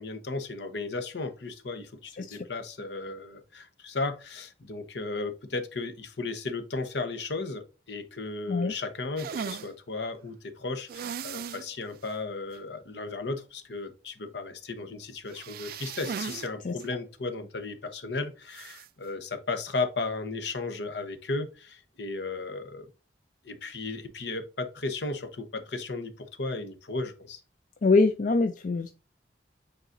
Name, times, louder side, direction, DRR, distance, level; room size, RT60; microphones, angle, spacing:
voice 1, 0.0-22.9 23.4-27.4, left 3 dB, 70° left, 0.9 m, -35 dB
sound 1, 9.2-9.7 10.9-11.7 12.0-12.1 12.5-12.6 15.3-16.5 16.8-16.9 18.5-18.9, right 7 dB, 55° right, 0.3 m, -37 dB
voice 2, 27.8-28.9, left 3 dB, 45° left, 0.4 m, -24 dB
9.1 x 4.0 x 2.6 m
head